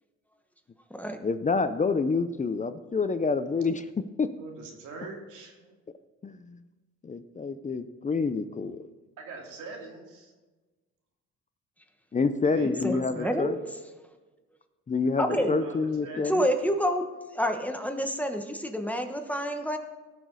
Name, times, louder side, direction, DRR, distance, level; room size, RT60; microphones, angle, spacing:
voice 1, 1.2-3.8 4.2-4.3 6.2-6.6 7.0-8.9 12.1-13.6 14.9-16.4, left 4 dB, 25° left, 11 dB, 0.6 m, -28 dB
voice 2, 4.3-5.8 9.2-10.3 12.4-13.5 15.2-16.6, right 3 dB, 80° right, 0 dB, 2.6 m, -42 dB
voice 3, 12.6-13.6 15.2-15.5 16.3-17.0 17.3-19.8, equal, 5° left, 5 dB, 1.2 m, -28 dB
17.5 x 6.1 x 4.1 m, 1.2 s
cardioid pair, 90°, 30 cm